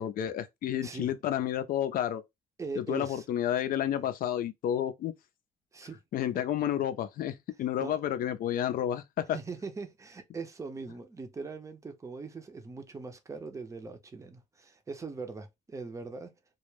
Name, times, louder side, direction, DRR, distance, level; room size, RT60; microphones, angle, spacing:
voice 1, 0.0-2.2 2.8-5.1 6.1-9.4, left 10 dB, 55° left, 0.5 m, -30 dB
voice 2, 2.6-3.2 3.9-4.0 5.7-6.0 6.3-6.4 7.8-8.0 9.3-16.3, right 4 dB, 20° right, 0.6 m, -41 dB
2.2 x 2.1 x 3.1 m
cardioid pair, 110°, 17 cm